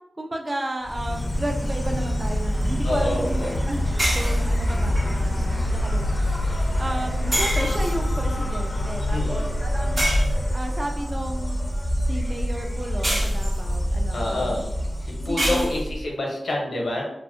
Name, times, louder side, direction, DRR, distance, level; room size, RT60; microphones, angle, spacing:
voice 1, 0.2-6.4 6.8-10.0 10.5-11.6 12.1-14.6 15.3-15.7, right 1 dB, 35° right, 3 dB, 0.4 m, -33 dB
Insect, 0.8-15.9, equal, 30° left, 0.4 m, -26 dB
voice 2, 2.8-3.6 9.1-9.5 14.1-14.6 15.0-17.0, left 1 dB, 80° left, -2 dB, 0.6 m, -27 dB
sound 1, 4.0-5.0 7.3-8.3 10.0-10.8 13.0-13.9 15.4-16.1, equal, 65° right, 1.1 m, -26 dB
2.5 x 2.1 x 2.4 m, 0.84 s
wide cardioid pair, 65°, 0 cm